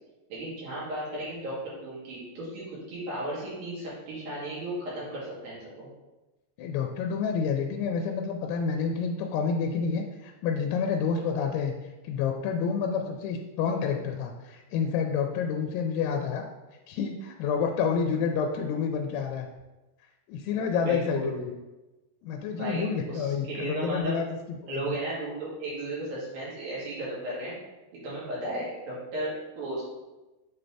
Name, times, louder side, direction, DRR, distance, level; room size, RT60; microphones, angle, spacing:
voice 1, 0.3-5.9 20.8-21.5 22.5-24.1 24.7-27.6 27.9-29.8, right 1 dB, 65° right, -8 dB, 3.8 m, -35 dB
voice 2, 6.6-11.7 12.0-16.4 16.9-19.5 20.3-21.5 22.2-24.3 24.6-25.0, left 6 dB, 85° left, 3 dB, 2.6 m, -29 dB
7.5 x 4.0 x 3.3 m, 1.1 s
omnidirectional pair, 4.6 m